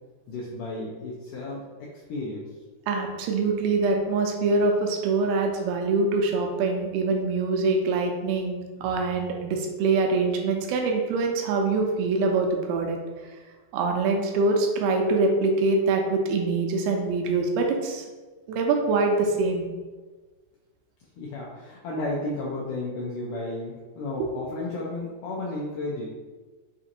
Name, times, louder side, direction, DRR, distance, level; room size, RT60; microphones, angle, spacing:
voice 1, 0.3-2.5 21.2-26.1, left 2 dB, 85° left, -4 dB, 1.9 m, -33 dB
voice 2, 2.9-13.0 13.7-18.0 18.5-19.7 24.2-24.3, right 3 dB, 85° right, 2 dB, 2.4 m, -24 dB
6.1 x 2.5 x 2.8 m, 1.3 s
omnidirectional pair, 4.4 m